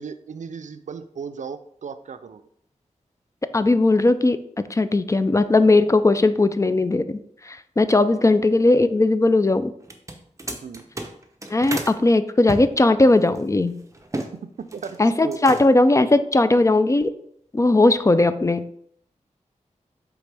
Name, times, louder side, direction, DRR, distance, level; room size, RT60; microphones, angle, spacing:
voice 1, 0.0-2.5 8.1-8.2 10.6-10.8 14.4-15.0 15.2-15.4, right 6 dB, 70° right, 11 dB, 0.4 m, -36 dB
voice 2, 3.5-4.4 4.7-7.2 7.5-9.7 11.5-13.8 15.0-17.1 17.5-18.8, left 2 dB, 25° left, 12 dB, 0.3 m, -18 dB
sound 1, 9.8-12.0 12.5-14.3 14.6-15.0 15.3-15.9, right 2 dB, 25° right, 0.8 m, -33 dB
8.2 x 3.5 x 3.3 m, 0.68 s
wide cardioid pair, 85°, 13 cm